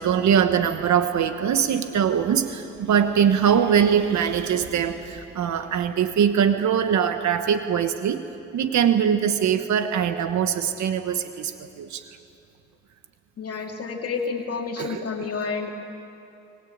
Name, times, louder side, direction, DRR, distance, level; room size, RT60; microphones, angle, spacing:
voice 1, 0.0-8.2 8.5-12.0 14.8-15.3, right 8 dB, 70° right, 9 dB, 1.3 m, -22 dB
voice 2, 13.4-15.7, left 5 dB, 50° left, 2 dB, 2.5 m, -29 dB
24.0 x 20.0 x 8.7 m, 2.8 s
cardioid pair, 90°, 30 cm